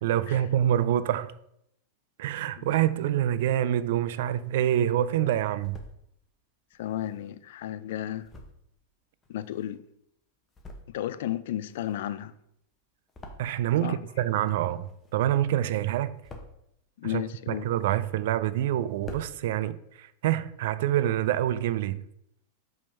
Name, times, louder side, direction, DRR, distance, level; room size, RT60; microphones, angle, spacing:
voice 1, 0.0-1.3 2.2-5.8 13.4-16.1 17.1-17.2 17.5-22.0, right 11 dB, 70° right, 0.3 m, -26 dB
sound 1, 4.0-4.8 5.3-6.0 6.7-10.0 10.4-11.2 11.4-13.9 14.2-15.4 15.7-16.7 17.3-18.3 18.6-18.7 18.9-19.3, left 2 dB, 20° left, 1.0 m, -48 dB
voice 2, 6.8-8.3 9.3-9.9 10.9-12.3 13.8-14.0 17.0-17.7, left 12 dB, 70° left, 0.4 m, -33 dB
5.1 x 3.6 x 5.5 m
hypercardioid pair, 120°, 0 cm